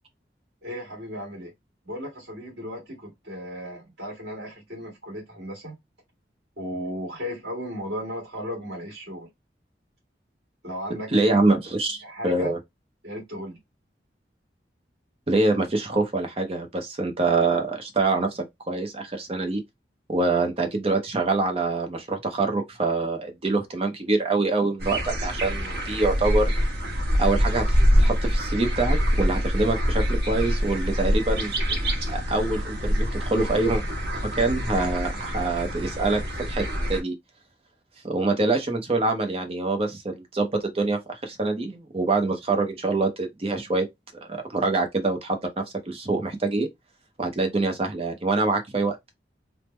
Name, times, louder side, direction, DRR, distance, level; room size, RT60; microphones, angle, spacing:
voice 1, 0.6-1.5 1.8-5.7 6.6-9.3 10.6-11.5 12.0-12.5 13.0-13.6, equal, 90° right, 1.6 m, -35 dB
voice 2, 11.1-12.0 12.2-12.6 15.3-19.6 20.1-26.6 27.2-31.5 32.1-33.8 34.4-37.1 38.0-43.9 44.3-46.7 47.2-49.0, right 3 dB, 35° right, 0.6 m, -25 dB
sound 1, 24.8-37.0, equal, 65° right, 0.9 m, -25 dB
3.5 x 2.0 x 3.0 m
head